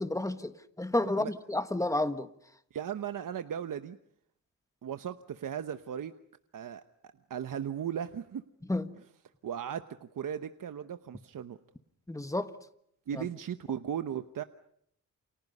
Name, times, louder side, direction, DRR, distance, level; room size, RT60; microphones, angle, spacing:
voice 1, 0.0-2.3 8.7-8.9 12.1-12.5 13.1-13.3, left 2 dB, 10° left, 1.4 m, -31 dB
voice 2, 2.7-4.0 4.8-6.1 6.5-8.4 9.4-11.6 13.1-14.4, right 9 dB, 80° right, 1.0 m, -37 dB
30.0 x 28.0 x 5.4 m
wide cardioid pair, 120°, 32 cm